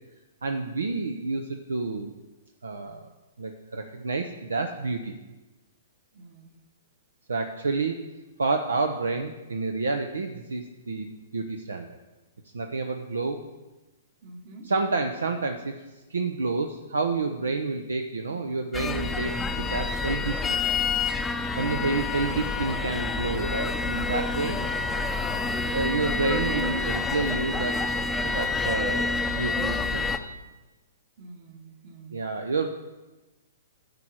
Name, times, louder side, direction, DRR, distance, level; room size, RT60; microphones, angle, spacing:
voice 1, 0.4-2.1 2.6-3.0 3.4-5.1 7.3-8.0 8.4-11.1 11.3-12.0 12.5-13.4 14.7-15.8 16.1-19.3 19.7-20.6 21.6-24.6 25.7-27.8 28.2-30.1 32.1-32.7, right 3 dB, 75° right, 5 dB, 0.7 m, -29 dB
voice 2, 6.1-6.6 14.2-14.7 17.4-17.6 21.7-22.1 24.5-24.8 31.2-32.2, right 2 dB, 45° right, 4 dB, 1.7 m, -46 dB
sound 1, 18.7-30.2, left 3 dB, 10° left, 0.6 m, -28 dB
10.5 x 4.9 x 7.4 m, 1.1 s
figure-of-eight pair, 115°, 0 cm